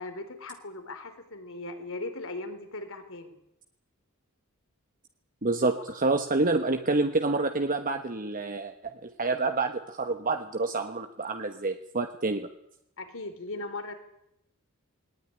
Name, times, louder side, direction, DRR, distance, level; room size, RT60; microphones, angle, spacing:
voice 1, 0.0-3.4 13.0-13.9, left 2 dB, 65° left, 9 dB, 3.7 m, -38 dB
voice 2, 5.4-8.7 9.0-12.5, right 3 dB, 40° right, 6 dB, 1.3 m, -28 dB
20.0 x 19.0 x 9.9 m, 0.79 s
head